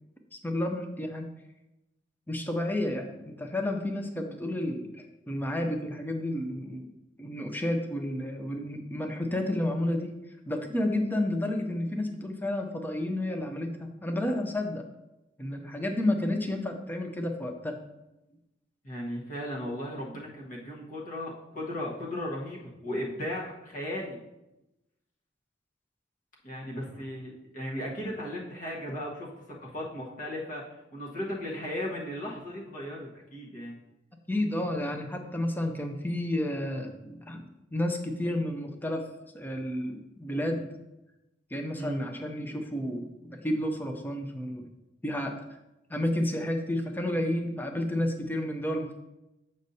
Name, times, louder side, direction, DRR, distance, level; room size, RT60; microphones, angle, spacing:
voice 1, 0.3-1.3 2.3-6.9 7.2-10.1 10.5-14.8 15.4-17.8 34.3-39.1 39.3-40.8 41.5-44.7 45.0-45.5 45.9-49.0, left 1 dB, 10° left, 4 dB, 0.6 m, -31 dB
voice 2, 18.8-24.2 26.4-29.3 29.6-33.8 41.8-42.0, left 1 dB, 45° left, -4 dB, 1.2 m, -36 dB
7.8 x 5.3 x 2.7 m, 0.94 s
head